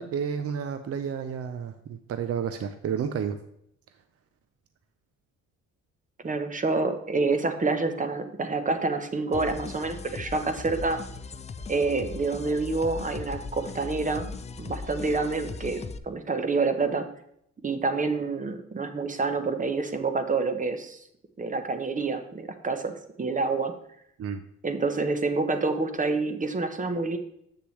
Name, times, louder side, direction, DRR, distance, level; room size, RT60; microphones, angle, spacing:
voice 1, 0.0-3.4 24.2-24.4, right 7 dB, 50° right, 9 dB, 0.6 m, -31 dB
voice 2, 6.2-11.0 11.7-17.1 17.6-21.0 21.4-23.7 24.6-27.2, right 3 dB, 25° right, 8 dB, 0.9 m, -28 dB
sound 1, 9.3-16.0, left 4 dB, 25° left, 0.4 m, -38 dB
8.0 x 6.7 x 3.2 m, 0.73 s
cardioid pair, 90°, 30 cm